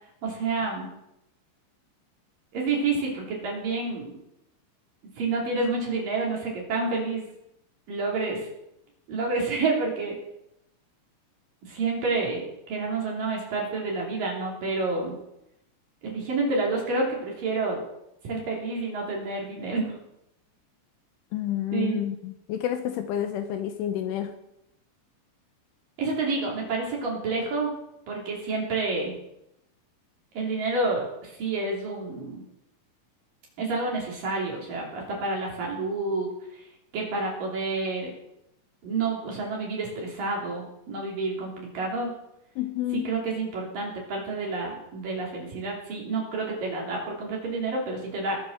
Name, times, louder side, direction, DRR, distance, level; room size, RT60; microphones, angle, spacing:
voice 1, 0.2-0.9 2.5-4.2 5.2-7.3 7.9-8.5 9.1-10.2 11.7-15.2 16.0-17.8 18.2-20.0 21.7-22.0 26.0-27.7 28.1-29.2 30.3-32.4 33.6-36.3 36.5-36.6 36.9-38.1 38.8-42.1 42.9-48.4, right 3 dB, 45° right, -2 dB, 4.2 m, -29 dB
voice 2, 21.3-24.3 42.6-43.1, left 11 dB, 75° left, 7 dB, 3.1 m, -29 dB
20.0 x 7.1 x 6.6 m, 0.83 s
omnidirectional pair, 6.0 m